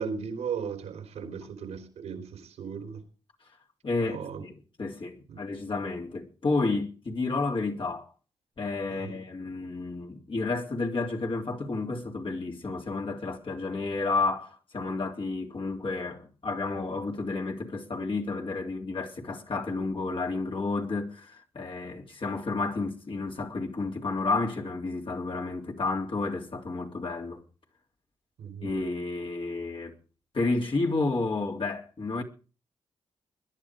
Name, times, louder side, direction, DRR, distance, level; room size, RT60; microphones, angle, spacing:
voice 1, 0.0-3.0 4.0-4.4 5.3-5.4 8.9-9.1 28.4-28.7, right 6 dB, 85° right, 3.4 m, -36 dB
voice 2, 3.8-8.1 8.6-27.4 28.6-29.9 30.3-32.2, left 3 dB, 50° left, 3.7 m, -31 dB
21.0 x 11.0 x 5.0 m
supercardioid pair, 50°, 11 cm